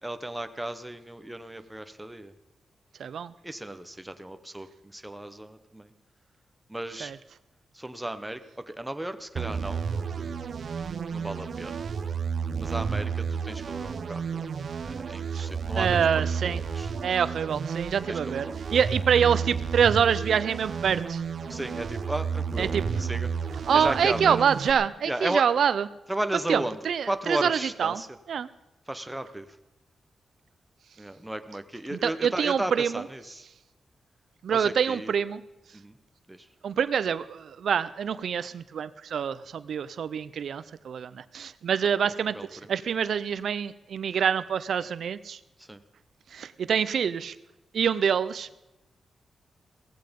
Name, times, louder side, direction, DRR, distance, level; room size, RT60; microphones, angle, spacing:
voice 1, 0.0-2.3 3.4-5.9 6.7-7.1 7.7-10.4 11.1-11.9 12.6-14.5 14.8-16.9 18.1-18.8 21.5-23.3 23.7-24.4 25.0-25.5 26.1-26.8 27.1-28.1 28.9-29.6 31.0-33.5 34.5-35.1 35.7-36.0 36.3-36.5 42.0-42.7 45.6-45.8, right 1 dB, 5° right, 9 dB, 1.0 m, -35 dB
voice 2, 3.0-3.3 7.0-7.1 15.3-15.5 15.8-16.6 17.0-18.4 18.7-21.2 22.6-22.8 23.7-25.8 26.5-26.6 26.9-28.0 28.3-28.5 32.0-32.9 34.4-35.4 36.6-45.4 46.3-47.3 47.7-48.6, right 7 dB, 70° right, 15 dB, 0.5 m, -26 dB
sound 1, 9.4-24.7, right 6 dB, 50° right, 0.9 m, -31 dB
16.5 x 15.5 x 5.3 m, 0.99 s
wide cardioid pair, 150°, 0 cm